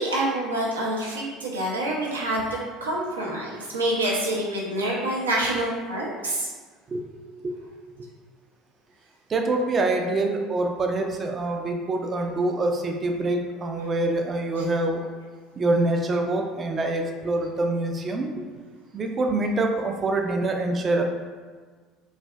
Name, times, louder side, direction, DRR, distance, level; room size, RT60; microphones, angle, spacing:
voice 1, 0.0-6.5, right 1 dB, 85° right, -4 dB, 0.5 m, -27 dB
voice 2, 9.3-15.1 15.6-18.4 18.9-21.0, right 2 dB, 35° right, 3 dB, 0.4 m, -25 dB
3.2 x 2.4 x 2.2 m, 1.5 s
figure-of-eight pair, 65°, 0 cm